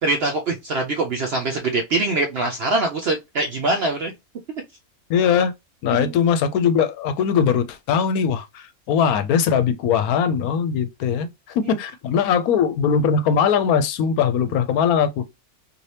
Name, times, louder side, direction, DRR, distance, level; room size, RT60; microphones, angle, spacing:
voice 1, 0.0-4.1 5.9-6.1 11.6-11.8, right 2 dB, 65° right, 0.6 m, -23 dB
voice 2, 5.1-5.5 5.8-15.3, left 7 dB, 75° left, 1.0 m, -20 dB
2.8 x 2.6 x 3.2 m
omnidirectional pair, 1.6 m